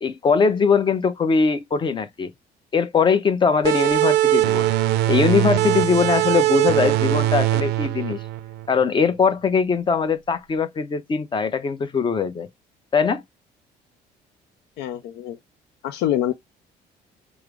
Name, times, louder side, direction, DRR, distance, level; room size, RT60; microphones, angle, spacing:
voice 1, 0.0-2.3 2.7-4.7 5.1-8.2 8.7-12.5 12.9-13.2, left 5 dB, 30° left, 0.6 m, -21 dB
sound 1, 3.6-8.9, right 14 dB, 80° right, 0.4 m, -21 dB
voice 2, 14.8-15.4 15.8-16.3, left 12 dB, 85° left, 0.5 m, -25 dB
4.8 x 2.0 x 3.4 m
cardioid pair, 110°, 17 cm